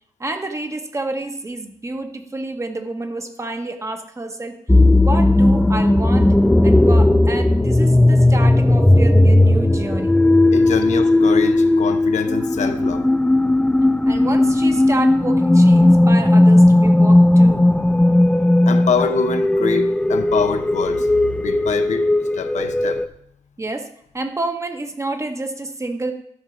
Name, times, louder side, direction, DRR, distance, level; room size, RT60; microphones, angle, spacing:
voice 1, 0.2-4.6 5.0-6.3 6.6-10.2 14.1-17.7 23.6-26.1, right 2 dB, 25° right, 5 dB, 1.1 m, -28 dB
sound 1, 4.7-23.1, left 1 dB, 5° left, 0.4 m, -15 dB
voice 2, 10.5-13.1 18.7-23.1, left 6 dB, 70° left, 8 dB, 0.8 m, -25 dB
12.5 x 4.5 x 6.3 m, 0.70 s
cardioid pair, 95°, 13 cm